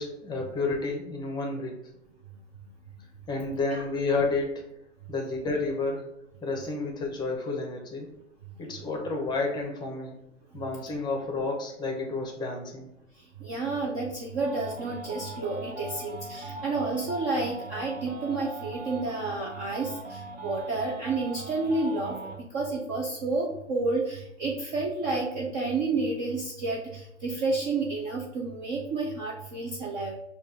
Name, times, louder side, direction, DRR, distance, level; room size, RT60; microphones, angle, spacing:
voice 1, 0.0-1.7 3.3-4.6 5.1-6.1 6.4-8.1 8.6-10.2 10.5-12.9, left 3 dB, 10° left, 1 dB, 0.7 m, -30 dB
voice 2, 13.4-30.2, right 3 dB, 20° right, -2 dB, 0.4 m, -30 dB
sound 1, 14.4-22.4, right 2 dB, 75° right, 1.4 m, -41 dB
5.2 x 2.4 x 3.6 m, 0.82 s
hypercardioid pair, 115°, 37 cm